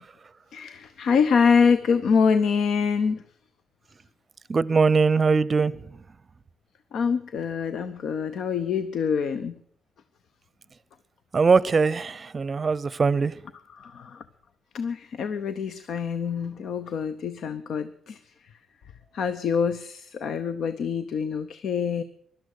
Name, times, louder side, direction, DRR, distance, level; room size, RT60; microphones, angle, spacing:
voice 1, 0.5-3.3 6.9-9.6 13.7-14.2 14.7-18.5 19.1-22.0, left 6 dB, 65° left, 13 dB, 0.7 m, -25 dB
voice 2, 4.5-6.0 11.3-13.4, right 4 dB, 35° right, 21 dB, 0.6 m, -21 dB
17.0 x 12.0 x 6.6 m, 0.65 s
cardioid pair, 90°, 0 cm